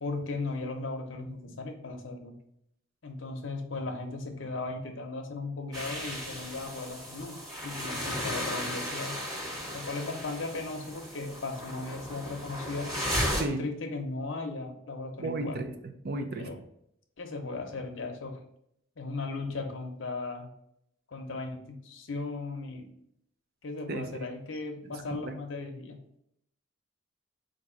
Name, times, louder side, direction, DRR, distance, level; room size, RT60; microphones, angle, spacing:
voice 1, 0.0-2.4 3.0-9.2 9.7-13.0 13.6-15.6 16.4-16.6 17.2-18.4 19.0-20.5 21.1-22.9 23.6-26.0, left 3 dB, 70° left, 4 dB, 0.7 m, -37 dB
sound 1, 5.7-13.4, equal, 20° right, 1.5 m, -35 dB
voice 2, 13.3-13.6 15.2-15.7 16.0-16.5 23.9-24.3 24.8-25.3, right 2 dB, 50° right, 7 dB, 0.5 m, -34 dB
4.6 x 2.6 x 3.9 m, 0.74 s
head